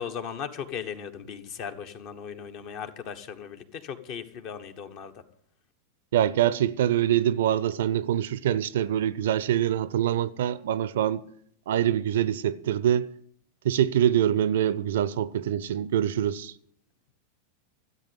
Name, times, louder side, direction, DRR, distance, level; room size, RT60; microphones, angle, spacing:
voice 1, 0.0-5.1, left 7 dB, 45° left, 1.3 m, -37 dB
voice 2, 6.1-11.2 11.7-13.1 13.6-16.5, right 10 dB, 60° right, 0.6 m, -24 dB
14.0 x 8.4 x 8.3 m
figure-of-eight pair, 90°, 0 cm